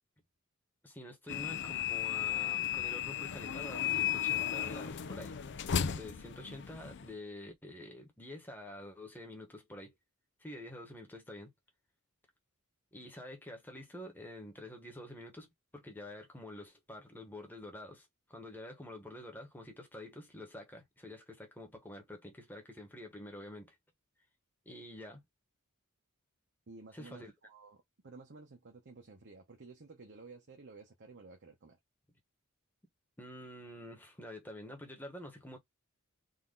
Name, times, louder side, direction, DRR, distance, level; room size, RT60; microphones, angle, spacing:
voice 1, 0.8-5.4 6.0-9.9 10.4-11.5 12.9-23.8 24.6-25.2 26.9-27.3 33.2-35.6, left 1 dB, 10° left, 1.3 m, -48 dB
sound 1, 1.3-7.1, left 10 dB, 55° left, 0.5 m, -35 dB
voice 2, 26.7-31.8, right 3 dB, 55° right, 1.0 m, -53 dB
4.0 x 2.8 x 3.9 m
head